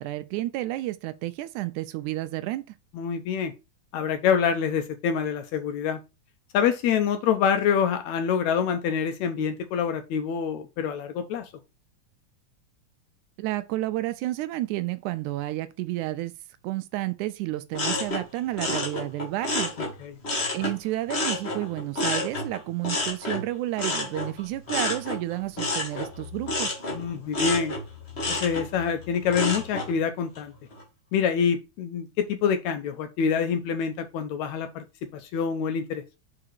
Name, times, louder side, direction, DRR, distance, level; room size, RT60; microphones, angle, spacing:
voice 1, 0.0-2.8 13.4-16.3 16.6-19.7 20.5-26.8, right 16 dB, 80° right, 1.9 m, -31 dB
voice 2, 2.9-3.5 3.9-6.0 6.5-11.5 20.0-20.1 26.9-27.7 28.3-30.5 31.1-34.8 35.1-36.0, left 7 dB, 75° left, 1.9 m, -26 dB
sound 1, 17.7-20.8 21.1-29.9 30.3-30.8, left 2 dB, 40° left, 0.8 m, -30 dB
5.0 x 4.8 x 4.5 m
omnidirectional pair, 3.6 m